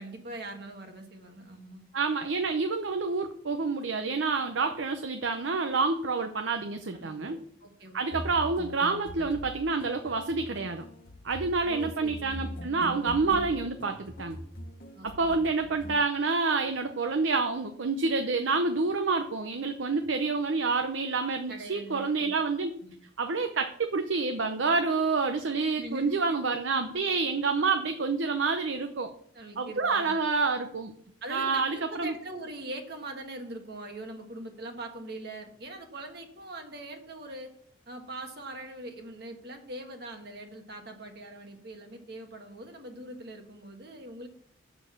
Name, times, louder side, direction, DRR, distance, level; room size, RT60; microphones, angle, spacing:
voice 1, 0.0-1.8 6.9-8.4 11.6-12.5 14.9-15.8 21.5-22.3 22.8-22.9 25.8-26.4 29.3-30.1 31.2-37.5 37.9-44.3, right 1 dB, 55° right, 4 dB, 1.4 m, -42 dB
voice 2, 1.9-7.4 7.9-10.8 11.2-14.4 15.0-22.7 23.2-29.1 29.6-30.9 31.3-32.1, right 4 dB, 75° right, 6 dB, 0.7 m, -28 dB
sound 1, 8.1-16.0, equal, 45° left, 1.1 m, -42 dB
7.0 x 6.7 x 7.1 m, 0.64 s
head